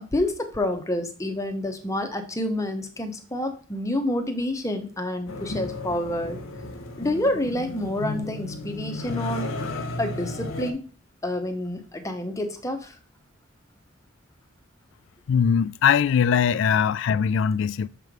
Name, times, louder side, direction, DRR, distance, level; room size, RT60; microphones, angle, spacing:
voice 1, 0.0-6.4 7.0-9.5 10.0-10.9 11.2-12.9, left 1 dB, 15° left, 0.8 m, -28 dB
sound 1, 5.3-10.7, left 2 dB, 85° left, 0.9 m, -33 dB
voice 2, 15.3-17.9, left 7 dB, 65° left, 0.3 m, -21 dB
6.8 x 3.1 x 5.1 m
head